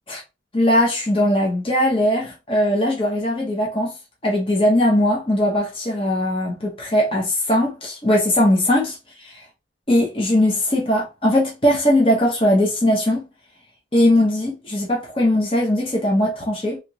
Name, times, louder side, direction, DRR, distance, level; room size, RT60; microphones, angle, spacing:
voice 1, 0.5-3.9 4.2-9.4 9.9-13.2 13.9-16.8, left 1 dB, 30° left, 0.9 m, -19 dB
3.3 x 2.9 x 2.9 m
head